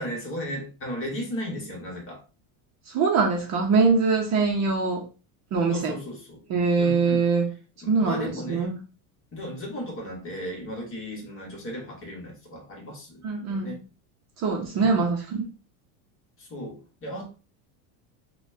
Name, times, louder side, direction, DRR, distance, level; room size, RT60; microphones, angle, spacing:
voice 1, 0.0-2.2 5.7-6.4 6.8-7.3 7.8-8.8 9.3-13.8 14.7-15.0 16.4-17.3, equal, 30° left, 1.2 m, -35 dB
voice 2, 2.9-5.0 5.5-6.0 6.5-7.5 7.9-8.7 13.2-13.7 14.4-15.5, right 4 dB, 35° right, 0.7 m, -23 dB
4.1 x 2.3 x 2.6 m
supercardioid pair, 135°, 46 cm